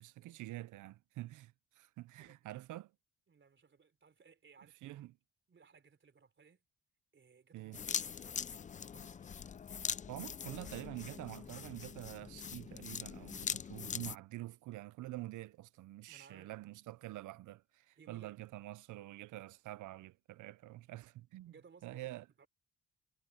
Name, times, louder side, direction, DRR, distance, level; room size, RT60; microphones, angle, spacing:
voice 1, 0.0-2.9 4.8-5.1 7.5-7.8 10.1-21.5 21.8-22.2, right 17 dB, 80° right, 0.7 m, -47 dB
voice 2, 3.3-5.0 5.5-6.6 7.1-9.3 16.1-16.5 18.0-18.4 21.5-22.5, right 5 dB, 40° right, 3.7 m, -63 dB
sound 1, 7.7-14.2, left 7 dB, 25° left, 0.4 m, -42 dB
cardioid pair, 90°, 30 cm